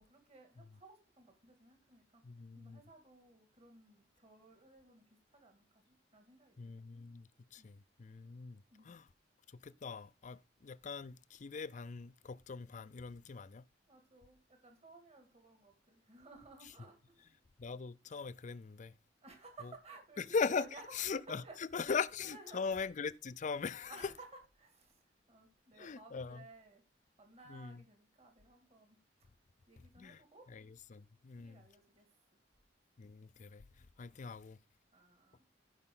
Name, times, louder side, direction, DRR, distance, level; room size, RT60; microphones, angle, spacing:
voice 1, 0.0-6.9 7.6-7.7 8.7-9.0 13.9-17.4 19.2-20.8 21.1-21.6 21.8-22.7 23.9-26.8 27.2-29.0 29.7-30.5 31.3-32.1 34.9-35.5, right 3 dB, 35° right, 2.3 m, -57 dB
voice 2, 2.2-2.8 6.6-9.1 9.6-13.6 17.6-18.9 20.2-20.6 21.0-21.4 21.7-24.1 25.8-26.4 27.5-27.8 30.0-30.2 30.5-30.6 30.9-31.7 33.0-33.7 34.0-34.6, left 5 dB, 40° left, 0.5 m, -40 dB
15.0 x 5.4 x 3.8 m
head